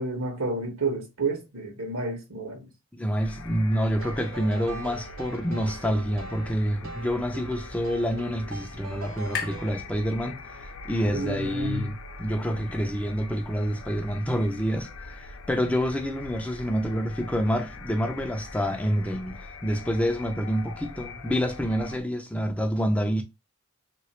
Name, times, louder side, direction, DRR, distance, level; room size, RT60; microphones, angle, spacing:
voice 1, 0.0-2.7 11.0-11.9, right 2 dB, 90° right, 1.4 m, -30 dB
voice 2, 2.9-23.2, equal, 5° left, 0.4 m, -28 dB
sound 1, 3.2-22.0, left 3 dB, 90° left, 0.6 m, -43 dB
sound 2, 4.0-9.7, right 3 dB, 70° right, 0.5 m, -42 dB
sound 3, 7.0-10.8, left 6 dB, 50° left, 0.8 m, -41 dB
3.2 x 3.0 x 2.9 m
head